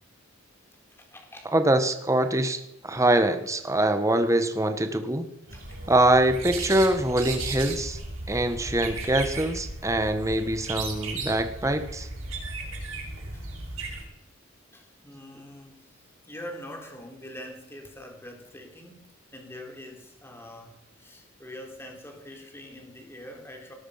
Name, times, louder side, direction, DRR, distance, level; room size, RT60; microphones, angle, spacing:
voice 1, 1.0-1.6 5.5-5.8 9.3-9.4 13.3-13.5 14.7-19.0 19.3-23.7, left 1 dB, 10° left, 2 dB, 3.7 m, -44 dB
voice 2, 1.5-5.2 5.9-8.0 8.3-12.1, right 1 dB, 15° right, 8 dB, 1.5 m, -24 dB
sound 1, 5.5-14.0, right 3 dB, 90° right, 6.6 m, -36 dB
19.0 x 12.0 x 5.8 m, 0.82 s
head